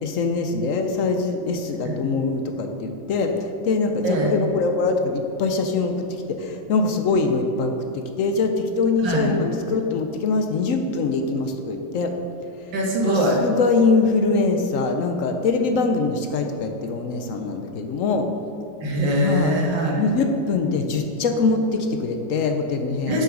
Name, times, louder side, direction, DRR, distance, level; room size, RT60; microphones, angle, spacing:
voice 1, 0.0-3.3 3.6-12.1 13.0-18.3 19.2-19.5 20.0-23.2, left 4 dB, 65° left, 5 dB, 0.8 m, -23 dB
voice 2, 12.7-13.4 18.8-20.1 23.1-23.2, right 1 dB, 85° right, -1 dB, 2.1 m, -22 dB
6.7 x 6.6 x 6.2 m, 2.9 s
omnidirectional pair, 1.9 m